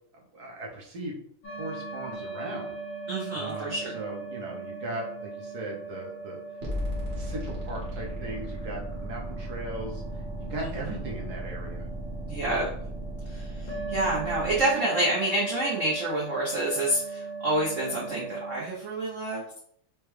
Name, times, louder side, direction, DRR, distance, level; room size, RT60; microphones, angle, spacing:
voice 1, 0.3-1.1 1.6-2.7 3.3-6.4 7.1-10.0 10.4-11.9, right 2 dB, 65° right, -1 dB, 1.1 m, -38 dB
sound 1, 1.4-18.6, right 3 dB, 65° left, 1.9 m, -39 dB
voice 2, 3.1-4.0 10.6-10.9 12.3-12.7 13.3-19.6, right 1 dB, 85° right, -4 dB, 0.6 m, -28 dB
sound 2, 6.6-14.6, right 1 dB, 40° right, 0.9 m, -36 dB
4.9 x 2.2 x 3.1 m, 0.67 s
omnidirectional pair, 2.4 m